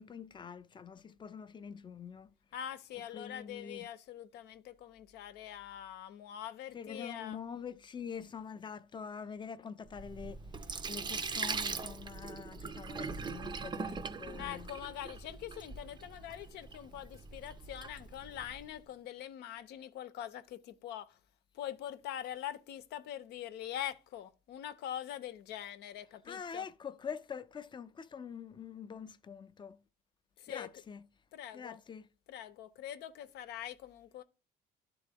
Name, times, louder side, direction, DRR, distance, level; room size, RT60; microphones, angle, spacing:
voice 1, 0.0-2.3 3.1-3.9 6.7-10.4 10.9-14.7 26.3-29.8 30.5-31.0 31.5-32.0, left 6 dB, 25° left, 0.5 m, -45 dB
voice 2, 2.5-7.4 14.4-21.2 21.5-26.7 30.4-30.8 31.3-31.8 32.3-34.2, left 11 dB, 80° left, 0.7 m, -44 dB
Sink (filling or washing), 9.9-18.7, right 4 dB, 25° right, 0.5 m, -41 dB
11.5 x 3.8 x 3.5 m
cardioid pair, 110°, 17 cm